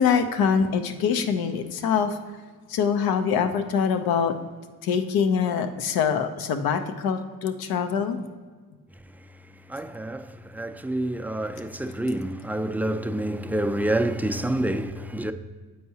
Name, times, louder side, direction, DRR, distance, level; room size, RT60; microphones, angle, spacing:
voice 1, 0.0-2.2 2.7-4.3 4.8-8.3, left 6 dB, 80° left, 0.6 m, -24 dB
voice 2, 9.7-15.3, right 1 dB, 5° right, 0.3 m, -28 dB
7.7 x 4.6 x 2.7 m
supercardioid pair, 55°, 35 cm